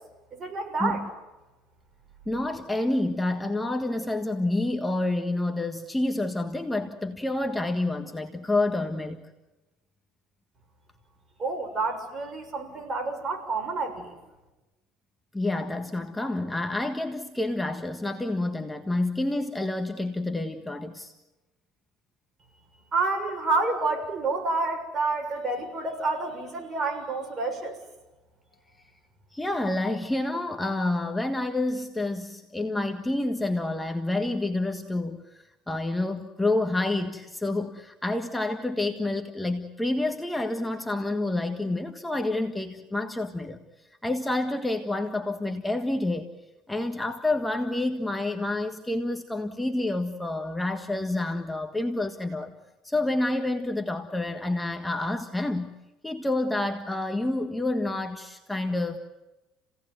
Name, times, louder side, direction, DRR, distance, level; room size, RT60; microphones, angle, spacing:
voice 1, 0.3-1.0 11.4-14.2 22.9-27.8, right 3 dB, 30° right, 5 dB, 6.8 m, -29 dB
voice 2, 2.3-9.2 15.3-21.1 29.3-46.3 46.7-52.6 52.8-55.7 56.0-59.0, left 2 dB, 10° left, 5 dB, 1.6 m, -28 dB
30.0 x 17.5 x 9.4 m, 1.1 s
supercardioid pair, 115°, 0 cm